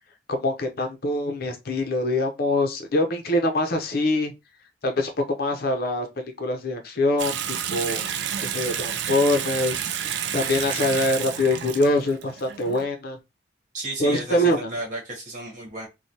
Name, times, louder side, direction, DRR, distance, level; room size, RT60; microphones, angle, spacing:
voice 1, 0.3-4.3 4.8-5.1 5.4-7.4 7.7-8.1 8.4-9.8 10.3-13.2 14.0-14.7, left 1 dB, 50° left, 0.5 m, -24 dB
Water tap faucet / Sink (filling or washing) / Bathtub (filling or washing), 7.2-12.8, right 9 dB, 60° right, 0.3 m, -30 dB
voice 2, 13.7-15.9, right 1 dB, 40° right, 1.2 m, -33 dB
3.1 x 2.1 x 2.7 m
head